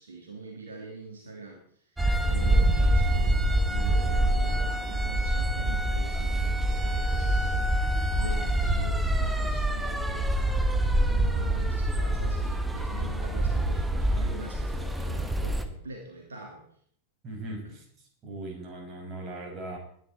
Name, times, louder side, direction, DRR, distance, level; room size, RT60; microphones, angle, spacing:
voice 1, 0.0-16.6 17.6-17.8, right 3 dB, 70° right, 1 dB, 2.9 m, -43 dB
sound 1, 2.0-15.7, right 1 dB, 10° right, 1.6 m, -26 dB
voice 2, 17.2-17.8 18.2-19.8, right 2 dB, 30° right, 1 dB, 6.4 m, -38 dB
21.0 x 10.5 x 4.4 m, 0.63 s
figure-of-eight pair, 90°, 0 cm